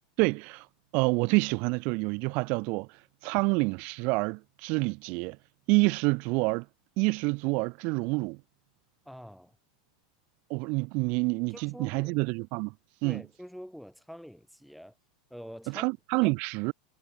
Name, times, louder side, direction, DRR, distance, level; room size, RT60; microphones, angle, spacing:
voice 1, 0.2-0.7 0.9-5.4 5.7-6.7 7.0-8.4 10.5-12.7 13.0-13.2 15.7-16.7, right 30 dB, 40° right, 0.5 m, -28 dB
voice 2, 9.1-9.6 11.5-12.2 13.0-14.9 15.3-15.8 16.2-16.3, equal, ahead, 0.7 m, -45 dB
supercardioid pair, 170°, 4 cm